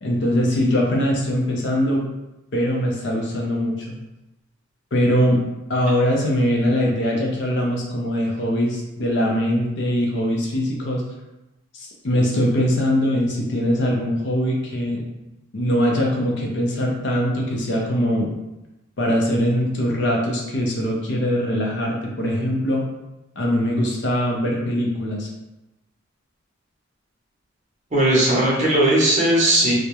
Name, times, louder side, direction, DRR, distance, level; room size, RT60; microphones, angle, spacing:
voice 1, 0.0-2.0 2.5-3.9 4.9-5.4 5.7-11.0 11.7-15.0 15.5-18.3 19.0-22.8 23.4-25.3, equal, 55° left, -1 dB, 0.5 m, -22 dB
voice 2, 27.9-29.7, right 1 dB, 35° right, -5 dB, 0.6 m, -17 dB
2.3 x 2.0 x 2.8 m, 0.94 s
head